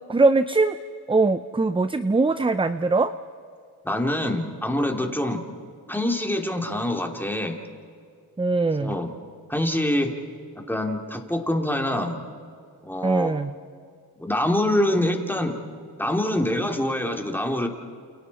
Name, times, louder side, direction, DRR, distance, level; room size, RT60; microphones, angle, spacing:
voice 1, 0.1-0.8 1.1-3.1 8.4-9.0 13.0-13.6, right 3 dB, 15° right, 11 dB, 0.6 m, -21 dB
voice 2, 3.8-5.4 5.9-7.6 8.8-9.1 9.5-10.1 10.7-12.2 12.8-13.3 14.2-15.6 16.0-17.7, left 1 dB, 5° left, 2 dB, 2.9 m, -25 dB
29.5 x 29.0 x 4.2 m, 2.2 s
cardioid pair, 75°, 41 cm